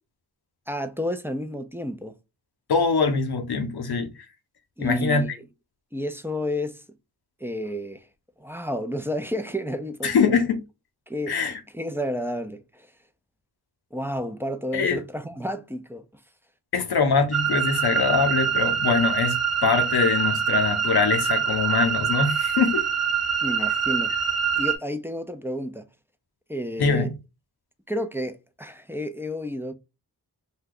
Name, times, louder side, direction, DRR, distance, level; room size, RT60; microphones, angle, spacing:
voice 1, 0.7-2.1 4.8-5.3 5.9-6.8 7.4-8.1 8.4-10.4 11.1-11.3 11.7-12.9 13.9-16.1 23.4-24.2 24.5-25.9 26.5-27.1 27.9-29.7, equal, 5° right, 0.5 m, -31 dB
voice 2, 2.7-4.1 4.8-5.2 10.0-10.6 11.3-11.6 14.7-15.0 16.7-22.9 26.8-27.1, left 5 dB, 65° left, 0.8 m, -23 dB
sound 1, 17.3-24.8, right 7 dB, 40° right, 1.0 m, -24 dB
2.7 x 2.3 x 3.7 m
cardioid pair, 50°, 41 cm